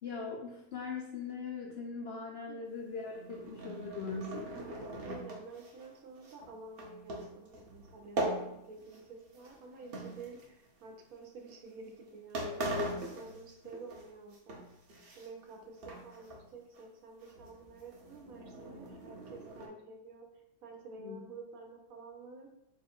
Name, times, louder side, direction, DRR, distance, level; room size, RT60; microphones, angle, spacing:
voice 1, 0.0-4.6 21.0-21.2, left 4 dB, 80° left, -1 dB, 0.5 m, -40 dB
sound 1, 2.9-9.1 9.3-10.8 11.5-11.7 12.1-12.2 12.3-14.0 14.3-15.5 15.8-16.4 16.7-16.8 17.2-19.7, right 1 dB, 50° right, 0.8 m, -41 dB
voice 2, 5.0-12.7 13.1-14.6 15.2-20.3 20.6-22.5, right 3 dB, 70° right, 2 dB, 1.1 m, -50 dB
3.9 x 2.4 x 4.3 m, 0.83 s
omnidirectional pair, 1.6 m